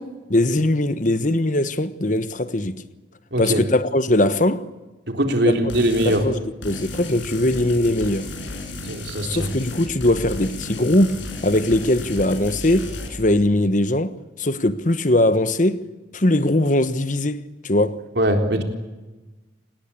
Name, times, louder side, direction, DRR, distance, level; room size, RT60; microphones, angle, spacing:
voice 1, 0.3-2.8 3.4-4.7 5.4-5.5 6.0-8.3 9.2-15.8 16.1-18.0, left 1 dB, 40° left, 1.2 m, -21 dB
voice 2, 3.3-3.6 5.1-6.2 8.8-9.5 18.2-18.6, right 1 dB, 60° right, 3.8 m, -21 dB
sound 1, 5.7-6.2 6.6-13.1, left 2 dB, 75° left, 6.3 m, -33 dB
28.0 x 20.0 x 8.5 m
head